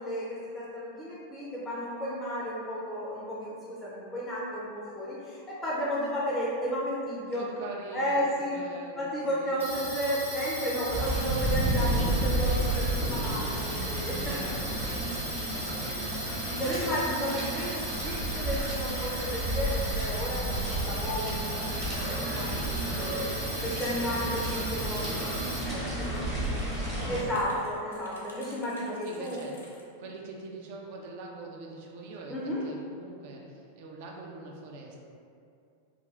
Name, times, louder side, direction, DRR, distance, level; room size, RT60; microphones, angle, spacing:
voice 1, 0.0-7.5 7.9-8.6 9.0-14.3 16.6-25.2 25.7-26.3 27.1-29.4 32.3-32.6, equal, 15° left, -6 dB, 0.4 m, -33 dB
voice 2, 7.3-8.2 8.5-9.7 14.2-17.1 17.4-17.8 24.9-27.6 28.5-28.6 29.0-29.5 30.0-35.0, right 2 dB, 50° right, -1 dB, 0.4 m, -44 dB
sound 1, 9.6-25.6, right 1 dB, 80° right, 0.8 m, -37 dB
sound 2, 10.9-27.2, right 1 dB, 30° right, 1.0 m, -32 dB
sound 3, 22.5-29.8, left 2 dB, 70° left, 0.5 m, -53 dB
2.5 x 2.3 x 3.0 m, 2.5 s
figure-of-eight pair, 90°, 0 cm